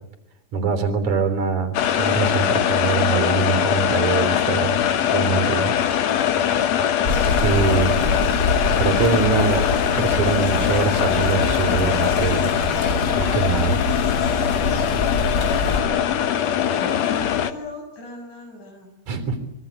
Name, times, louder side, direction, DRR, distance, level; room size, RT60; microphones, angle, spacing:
voice 1, 0.5-4.8 5.1-5.7 7.4-7.9 8.8-9.6 9.9-12.5 13.2-13.8 19.1-19.4, right 5 dB, 70° right, 8 dB, 4.9 m, -23 dB
sound 1, 1.7-17.5, left 9 dB, 65° left, 2.3 m, -21 dB
sound 2, 7.0-15.8, left 1 dB, 35° left, 7.2 m, -26 dB
voice 2, 16.7-18.9, left 2 dB, 85° left, 4 dB, 8.8 m, -37 dB
25.5 x 23.5 x 8.4 m, 0.84 s
omnidirectional pair, 3.4 m